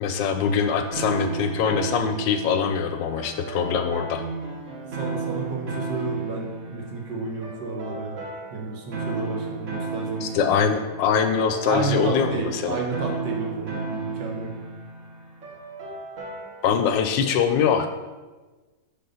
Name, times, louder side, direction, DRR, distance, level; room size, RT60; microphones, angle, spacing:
voice 1, 0.0-4.2 10.2-12.8 16.6-17.9, left 7 dB, 75° left, 7 dB, 1.2 m, -23 dB
sound 1, 0.9-16.8, right 4 dB, 45° right, 1.2 m, -34 dB
voice 2, 5.0-8.2 8.5-10.5 11.6-14.5, right 3 dB, 65° right, 0 dB, 1.6 m, -31 dB
6.7 x 4.0 x 5.4 m, 1.2 s
omnidirectional pair, 2.1 m